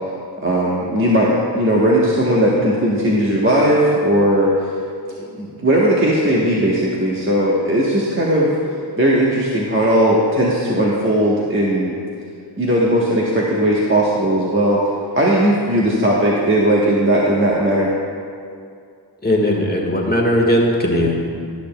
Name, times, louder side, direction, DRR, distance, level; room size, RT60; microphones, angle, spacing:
voice 1, 0.4-4.5 5.2-8.5 9.0-11.9 12.6-14.8 15.1-17.9, right 1 dB, 30° right, -5 dB, 1.1 m, -17 dB
voice 2, 19.2-21.3, left 1 dB, 20° left, -1 dB, 1.5 m, -18 dB
12.5 x 6.7 x 2.2 m, 2.3 s
cardioid pair, 45°, 43 cm